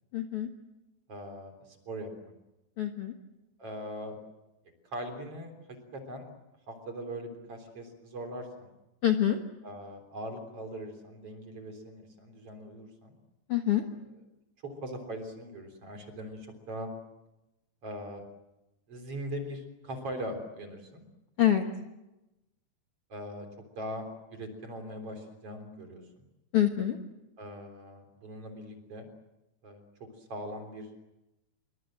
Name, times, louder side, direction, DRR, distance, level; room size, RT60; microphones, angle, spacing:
voice 1, 0.1-0.5 2.8-3.1 9.0-9.4 13.5-13.8 21.4-21.6 26.5-27.0, left 11 dB, 75° left, 4 dB, 1.3 m, -25 dB
voice 2, 1.1-2.3 3.6-4.1 4.9-6.2 6.7-8.7 9.6-13.1 14.6-16.9 17.8-18.2 18.9-21.0 23.1-23.5 23.8-26.3 27.4-29.1 29.6-29.8 30.2-30.9, equal, 35° right, 5 dB, 4.1 m, -41 dB
27.0 x 24.0 x 7.7 m, 0.97 s
omnidirectional pair, 4.9 m